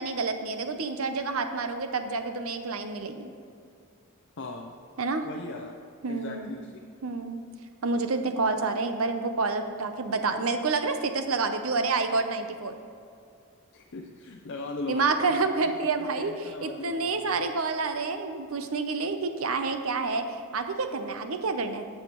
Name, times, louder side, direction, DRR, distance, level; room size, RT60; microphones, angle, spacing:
voice 1, 0.0-3.3 5.0-5.3 6.0-6.5 7.0-7.4 7.8-12.8 14.9-21.9, right 3 dB, 80° right, 8 dB, 0.7 m, -28 dB
voice 2, 4.4-4.7 5.2-5.7 6.1-6.7 13.7-15.4 16.0-17.4, left 3 dB, 60° left, 1 dB, 0.6 m, -38 dB
15.5 x 5.7 x 3.0 m, 2.4 s
head